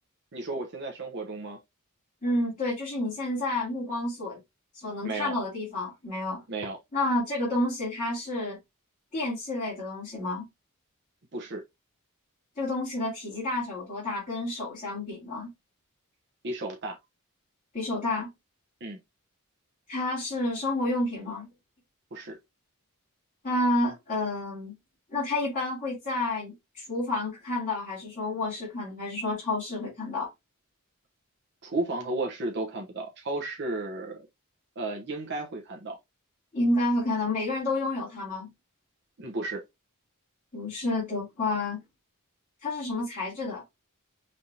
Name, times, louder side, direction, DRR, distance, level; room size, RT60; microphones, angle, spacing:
voice 1, 0.3-1.6 5.0-5.3 6.5-6.8 11.3-11.6 16.4-17.0 18.8-19.0 22.1-22.4 31.6-34.3 34.8-35.9 39.2-39.6, right 2 dB, 55° right, 0.9 m, -33 dB
voice 2, 2.2-4.4 4.7-6.4 6.9-8.6 9.1-10.5 12.6-15.5 17.7-18.3 19.9-21.5 23.4-24.7 25.1-30.3 36.5-38.5 40.5-41.8 42.6-43.6, left 2 dB, 35° left, 3.2 m, -30 dB
5.4 x 3.4 x 2.8 m
head